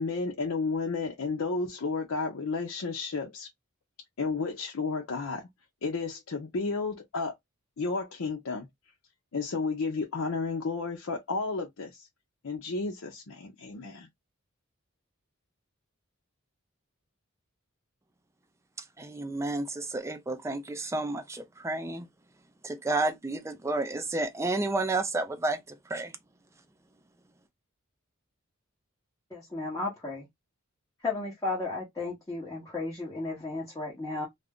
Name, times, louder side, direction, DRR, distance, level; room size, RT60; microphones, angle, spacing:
voice 1, 0.0-3.5 4.2-5.5 5.8-7.3 7.8-8.7 9.3-12.1 12.4-14.1, left 4 dB, 75° left, 0.6 m, -32 dB
voice 2, 19.0-22.0 22.6-25.6 25.9-26.1, right 2 dB, 15° right, 0.4 m, -31 dB
voice 3, 29.3-30.3 31.0-34.3, left 3 dB, 15° left, 0.9 m, -34 dB
2.4 x 2.0 x 3.5 m
head